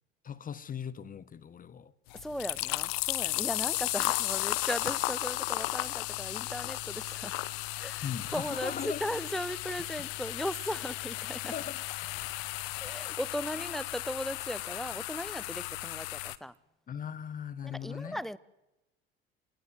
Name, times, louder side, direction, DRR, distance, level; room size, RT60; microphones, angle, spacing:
voice 1, 0.2-1.9 8.0-9.0 11.4-12.3 13.6-13.7 16.9-18.2, left 8 dB, 25° left, 1.2 m, -39 dB
sound 1, 2.1-16.4, left 20 dB, 55° left, 1.1 m, -35 dB
voice 2, 2.1-7.4 7.7-11.5 12.8-16.5 17.6-18.4, equal, ahead, 1.1 m, -37 dB
28.0 x 19.5 x 9.6 m
figure-of-eight pair, 65°, 31 cm